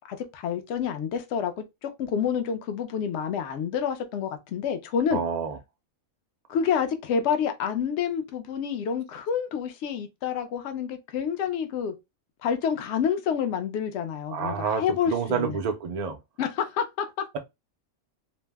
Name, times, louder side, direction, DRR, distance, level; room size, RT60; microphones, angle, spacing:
voice 1, 0.0-5.2 6.5-11.9 12.4-15.6 16.4-17.3, left 7 dB, 65° left, 0.8 m, -28 dB
voice 2, 5.1-5.6 14.3-16.2, right 6 dB, 70° right, 0.4 m, -28 dB
2.6 x 2.0 x 3.3 m
omnidirectional pair, 1.4 m